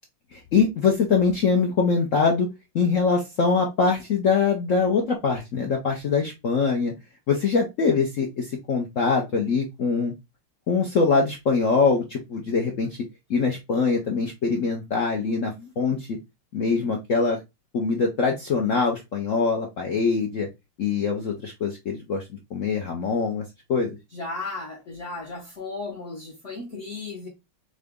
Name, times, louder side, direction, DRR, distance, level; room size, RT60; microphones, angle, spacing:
voice 1, 0.3-2.5 2.7-6.9 7.3-10.1 10.7-13.0 13.3-16.2 16.5-17.4 17.7-20.5 20.8-22.2 22.5-23.4 23.7-24.0, left 4 dB, 75° left, 0.7 m, -23 dB
voice 2, 24.1-27.3, left 3 dB, 50° left, 0.9 m, -35 dB
3.9 x 3.8 x 3.5 m
omnidirectional pair, 2.3 m